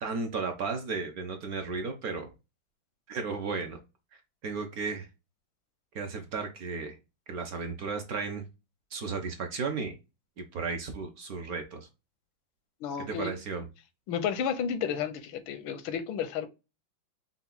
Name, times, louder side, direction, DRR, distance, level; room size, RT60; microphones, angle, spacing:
voice 1, 0.0-2.3 3.1-3.8 4.1-5.1 5.9-7.0 7.3-8.5 8.9-10.0 10.4-11.9 13.1-13.7, right 4 dB, 60° right, 1.1 m, -34 dB
voice 2, 12.8-13.4 14.1-16.5, left 7 dB, 90° left, 1.5 m, -32 dB
5.7 x 2.4 x 3.8 m
omnidirectional pair, 2.2 m